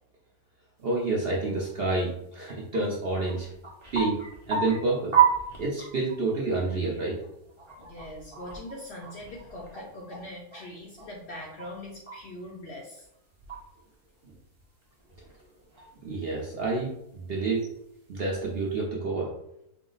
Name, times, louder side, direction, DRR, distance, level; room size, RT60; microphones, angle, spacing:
voice 1, 0.8-3.5 3.9-4.2 4.5-5.2 5.6-7.2 16.0-17.7 18.1-19.3, right 3 dB, 55° right, -3 dB, 0.7 m, -28 dB
sound 1, 1.3-1.4 1.7-1.8 2.2-2.3 2.5-2.8 3.1-6.2 6.6-6.7 7.0-10.6 11.0-12.6 13.0-13.9 14.4-16.8 17.3-17.4 18.3-18.6, right 8 dB, 25° right, 0.7 m, -31 dB
voice 2, 7.8-13.1, left 1 dB, 60° left, -1 dB, 0.7 m, -42 dB
4.6 x 2.0 x 3.8 m, 0.79 s
omnidirectional pair, 1.6 m